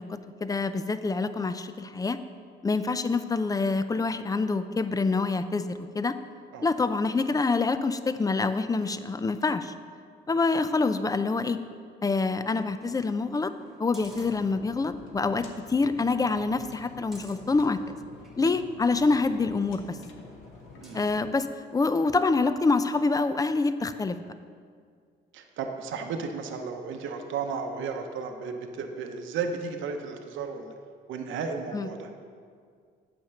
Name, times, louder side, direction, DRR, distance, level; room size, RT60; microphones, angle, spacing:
voice 1, 0.0-2.2 2.6-6.2 6.6-9.7 10.3-11.6 12.0-13.5 13.8-17.8 18.4-20.0 20.9-24.3 31.7-31.9, left 3 dB, 20° left, 11 dB, 0.4 m, -26 dB
sound 1, 12.8-15.0 15.4-15.5 15.9-18.4 19.0-21.2 21.7-21.8, equal, ahead, 1.7 m, -53 dB
sound 2, 14.0-21.3, left 3 dB, 80° left, 1.1 m, -49 dB
voice 2, 25.3-30.7 31.1-32.1, right 5 dB, 75° right, 5 dB, 0.8 m, -34 dB
8.8 x 5.1 x 6.7 m, 2.1 s
cardioid pair, 90°, 20 cm